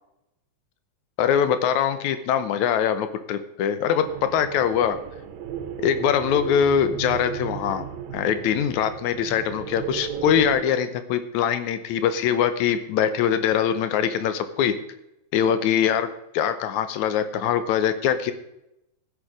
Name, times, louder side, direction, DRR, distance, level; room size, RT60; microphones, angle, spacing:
voice 1, 1.2-5.0 5.8-7.9 8.1-14.7 15.3-16.1 16.3-18.3, left 8 dB, 85° left, 11 dB, 2.2 m, -23 dB
sound 1, 4.0-10.6, right 8 dB, 80° right, 2.2 m, -34 dB
15.0 x 6.5 x 4.9 m, 0.86 s
omnidirectional pair, 3.4 m